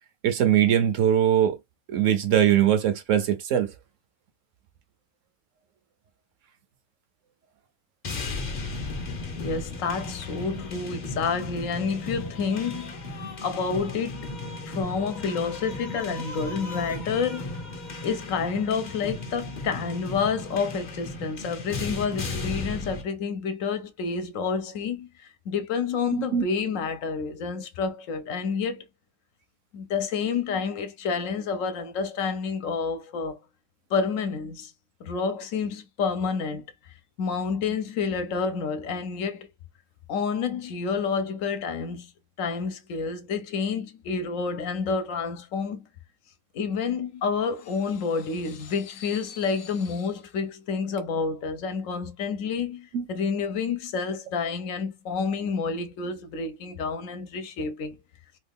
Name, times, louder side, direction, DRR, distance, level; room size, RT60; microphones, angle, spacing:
voice 1, 0.2-1.6 1.9-3.7 26.1-26.4 52.9-53.1, right 10 dB, 70° right, 0.9 m, -21 dB
sound 1, 8.0-23.0, left 2 dB, 45° left, 0.7 m, -35 dB
voice 2, 9.4-12.9 13.4-14.3 14.7-17.6 18.0-25.1 25.5-28.8 29.7-33.4 33.9-34.7 35.0-36.6 37.2-39.5 40.1-42.1 42.4-45.9 46.5-58.0, left 5 dB, 70° left, 1.0 m, -29 dB
2.9 x 2.3 x 3.4 m
omnidirectional pair, 1.4 m